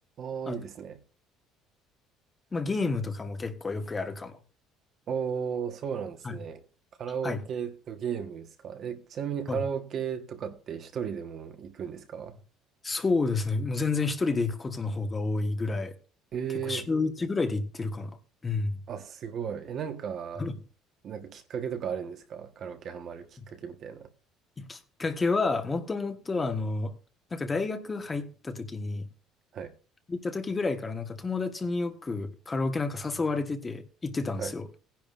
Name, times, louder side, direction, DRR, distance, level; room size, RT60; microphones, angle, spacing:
voice 1, 0.2-1.0 5.1-6.6 7.0-12.4 16.3-16.9 18.9-20.5 21.0-24.1 29.5-29.7 34.4-34.5, right 7 dB, 40° right, 1.3 m, -35 dB
voice 2, 2.5-4.4 6.2-6.3 7.2-7.4 9.5-9.6 12.8-15.9 16.6-18.1 18.4-18.8 20.4-20.5 24.6-26.9 27.3-29.1 30.1-34.6, left 3 dB, 15° left, 1.3 m, -30 dB
18.0 x 10.5 x 2.5 m
cardioid pair, 160°, 0 cm